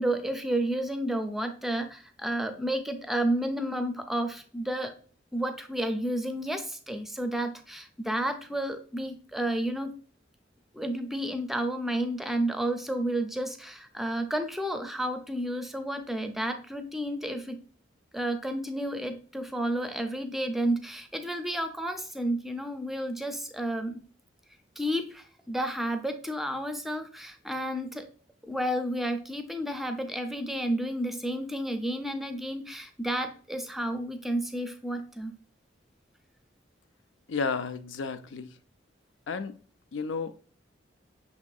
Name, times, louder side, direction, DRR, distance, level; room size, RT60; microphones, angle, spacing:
voice 1, 0.0-4.9 5.3-9.9 10.7-17.6 18.1-24.0 24.8-28.1 28.4-35.3, right 1 dB, ahead, 0.5 m, -31 dB
voice 2, 37.3-38.6 39.3-39.5 39.9-40.3, left 4 dB, 85° left, 0.5 m, -32 dB
6.0 x 3.6 x 2.3 m
head